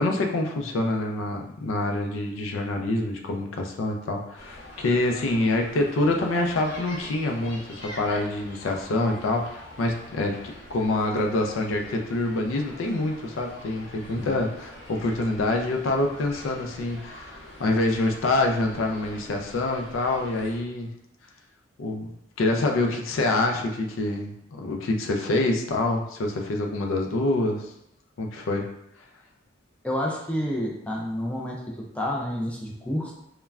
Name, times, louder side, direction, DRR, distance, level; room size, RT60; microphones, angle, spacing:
voice 1, 0.0-10.4 10.7-20.9 21.8-22.1 22.4-27.7 28.2-28.7, left 2 dB, 85° left, 2 dB, 0.4 m, -26 dB
sound 1, 4.3-20.6, left 1 dB, 60° left, 0.7 m, -45 dB
voice 2, 29.8-33.1, left 1 dB, 5° left, -3 dB, 0.3 m, -29 dB
3.1 x 2.2 x 2.3 m, 0.78 s
head